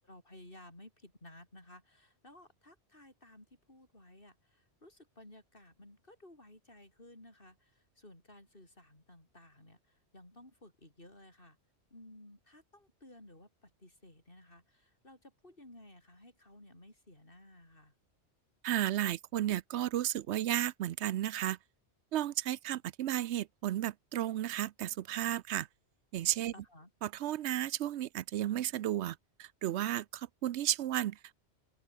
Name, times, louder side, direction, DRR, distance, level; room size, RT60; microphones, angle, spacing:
voice 1, 0.0-11.6 11.9-17.9 26.5-26.9, left 1 dB, 50° left, 7.6 m, -56 dB
voice 2, 18.6-21.6 22.1-25.7 26.1-26.5 27.0-31.3, right 12 dB, 80° right, 0.9 m, -33 dB
open air
omnidirectional pair, 1.2 m